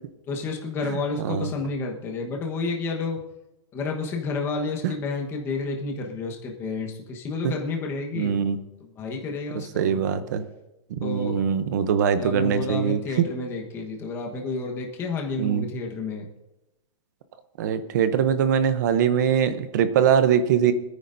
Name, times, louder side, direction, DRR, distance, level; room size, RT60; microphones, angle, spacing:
voice 1, 0.3-3.2 3.7-8.5 8.8-10.2 11.0-11.4 12.2-16.3, left 3 dB, 10° left, 1 dB, 1.2 m, -30 dB
voice 2, 1.2-1.5 7.4-7.5 8.1-8.6 9.8-10.5 10.9-13.2 15.4-15.7 17.6-20.7, right 8 dB, 30° right, 12 dB, 0.7 m, -22 dB
25.5 x 9.8 x 2.6 m, 0.98 s
hypercardioid pair, 180°, 18 cm